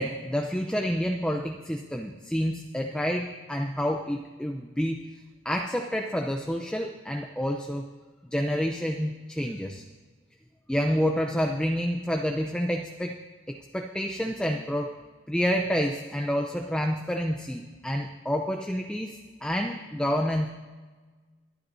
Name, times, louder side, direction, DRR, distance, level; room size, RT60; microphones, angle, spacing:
voice 1, 0.0-5.0 5.4-7.9 8.2-9.8 10.7-13.2 13.5-14.9 15.3-20.5, equal, 5° left, 3 dB, 0.6 m, -28 dB
25.5 x 11.0 x 2.7 m, 1.4 s
head